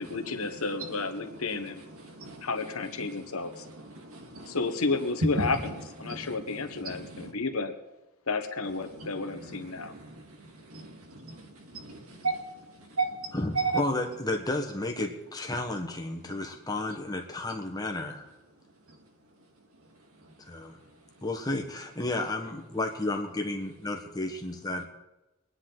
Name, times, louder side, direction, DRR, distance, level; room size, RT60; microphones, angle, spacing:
voice 1, 0.0-1.8 2.4-3.7 4.5-5.7 6.0-7.7 8.3-9.9, left 3 dB, 75° left, 7 dB, 1.3 m, -31 dB
voice 2, 0.6-1.3 1.9-2.5 3.0-4.6 5.3-5.7 6.0-7.3 8.9-13.8 18.9-19.0 20.2-20.3, right 4 dB, 80° right, 4 dB, 1.9 m, -37 dB
voice 3, 13.3-18.3 20.5-20.8 21.2-24.8, left 2 dB, 15° left, 3 dB, 1.4 m, -32 dB
22.5 x 9.7 x 4.0 m, 0.99 s
head